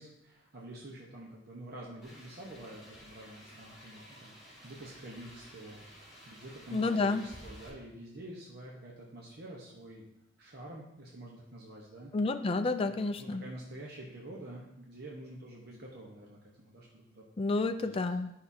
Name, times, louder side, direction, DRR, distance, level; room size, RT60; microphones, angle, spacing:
voice 1, 0.0-5.8 6.3-10.0 10.4-12.1 12.8-18.0, right 1 dB, 50° right, -3 dB, 1.0 m, -48 dB
sound 1, 2.0-7.7, equal, ahead, 3.0 m, -53 dB
voice 2, 6.7-7.2 12.1-13.4 17.4-18.3, left 3 dB, 30° left, 7 dB, 0.3 m, -30 dB
10.5 x 5.6 x 2.8 m, 0.83 s
head